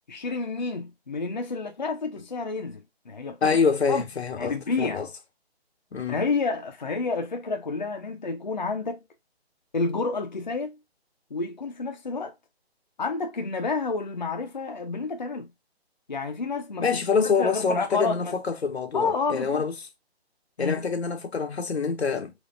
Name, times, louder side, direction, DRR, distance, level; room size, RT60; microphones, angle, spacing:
voice 1, 0.1-3.6 3.9-4.0 4.4-5.0 6.1-9.0 9.7-10.8 11.3-12.3 13.0-15.5 16.1-16.9 17.4-18.3 18.9-19.6 20.6-20.8, left 4 dB, 45° left, 0.6 m, -29 dB
voice 2, 3.4-5.1 5.9-6.2 16.8-19.7 20.6-22.3, left 5 dB, 80° left, 0.9 m, -26 dB
3.5 x 3.0 x 2.4 m
hypercardioid pair, 180°, 32 cm